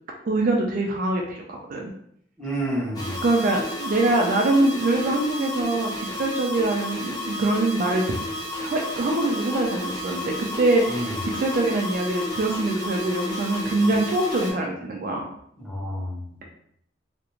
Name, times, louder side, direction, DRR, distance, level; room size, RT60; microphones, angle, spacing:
voice 1, 0.3-1.9 3.2-8.0 8.6-15.3, right 2 dB, 50° right, 1 dB, 0.4 m, -24 dB
voice 2, 2.4-3.2 10.9-11.3 15.6-16.3, equal, 5° left, -7 dB, 0.8 m, -30 dB
sound 1, 3.0-14.5, left 1 dB, 20° left, 0.5 m, -32 dB
2.4 x 2.1 x 2.9 m, 0.68 s
head